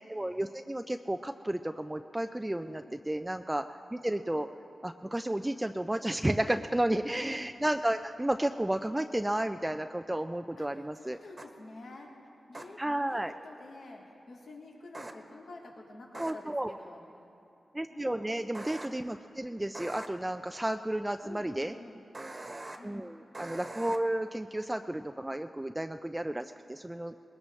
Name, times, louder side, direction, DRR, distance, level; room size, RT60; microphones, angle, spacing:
voice 1, 0.1-4.5 4.8-11.2 12.8-13.3 16.2-16.7 17.7-21.7 22.8-27.1, right 1 dB, 15° right, 7 dB, 0.4 m, -32 dB
voice 2, 2.6-3.0 6.4-6.9 10.6-10.7 11.0-12.1 12.5-12.8 13.1-17.0 17.9-18.4 21.2-22.0 22.8-23.0, left 2 dB, 80° left, -2 dB, 2.0 m, -49 dB
sound 1, 11.4-11.5 12.5-12.6 14.9-15.1 16.1-16.3 18.5-18.9 19.7-20.1 22.1-22.8 23.3-24.0, right 2 dB, 35° right, 1.3 m, -42 dB
20.5 x 19.0 x 3.2 m, 2.9 s
cardioid pair, 60°, 0 cm